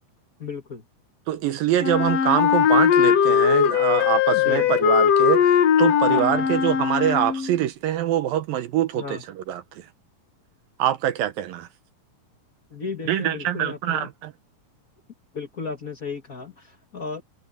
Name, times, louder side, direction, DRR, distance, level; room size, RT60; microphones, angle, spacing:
voice 1, 0.4-0.8 4.3-4.7 6.1-6.5 8.9-9.2 12.7-14.1 15.3-17.2, left 5 dB, 85° left, 0.7 m, -34 dB
voice 2, 1.3-9.9 10.8-11.7 13.1-14.3, right 12 dB, 70° right, 2.4 m, -24 dB
Wind instrument woodwind instrument, 1.8-7.6, left 8 dB, 65° left, 1.7 m, -19 dB
omnidirectional pair, 4.7 m